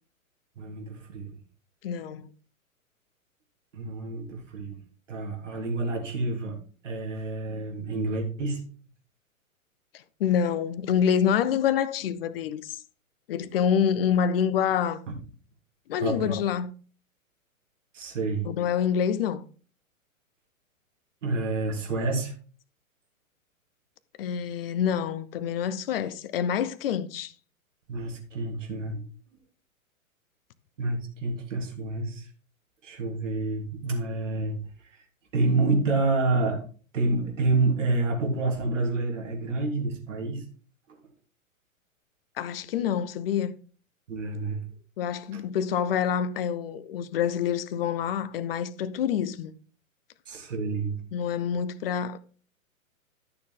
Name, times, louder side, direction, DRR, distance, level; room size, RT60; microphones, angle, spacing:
voice 1, 0.6-1.3 3.7-4.8 5.1-6.6 6.8-8.6 15.1-15.2 16.0-16.3 17.9-18.5 21.2-22.3 27.9-29.1 30.8-32.2 32.8-34.6 35.3-36.6 36.9-40.4 44.1-44.6 45.3-45.4 50.3-50.9, right 3 dB, 60° right, 3.4 m, -28 dB
voice 2, 1.8-2.3 9.9-12.8 13.3-15.0 15.9-16.7 18.4-19.4 24.2-27.3 42.4-43.5 45.0-49.5 51.1-52.2, left 8 dB, 40° left, 0.9 m, -27 dB
12.0 x 6.8 x 3.8 m
figure-of-eight pair, 115°, 42 cm